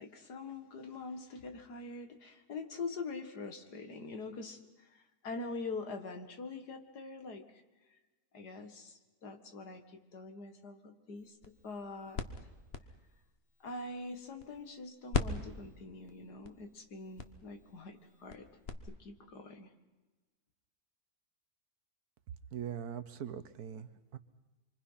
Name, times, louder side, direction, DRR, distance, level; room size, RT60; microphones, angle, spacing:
voice 1, 0.0-7.4 8.3-9.8 10.1-12.2 13.6-18.5 18.8-19.7, left 3 dB, 85° left, 6 dB, 2.4 m, -44 dB
sound 1, 11.2-14.8 15.1-18.7, left 5 dB, 40° left, 1.4 m, -41 dB
voice 2, 22.5-24.2, right 9 dB, 75° right, 12 dB, 1.5 m, -42 dB
26.0 x 24.5 x 5.7 m, 1.2 s
omnidirectional pair, 1.7 m